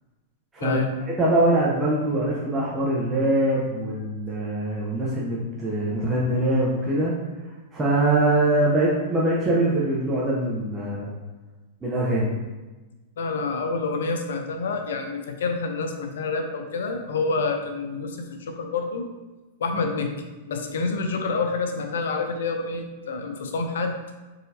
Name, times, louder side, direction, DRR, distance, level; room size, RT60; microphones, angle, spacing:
voice 1, 0.6-0.9 13.2-19.1 19.6-20.1 20.5-24.0, left 4 dB, 80° left, 5 dB, 0.6 m, -28 dB
voice 2, 1.2-7.1 7.7-11.1 11.8-12.3, right 1 dB, 15° right, -6 dB, 0.8 m, -23 dB
4.0 x 3.8 x 2.8 m, 1.2 s
hypercardioid pair, 130°, 0 cm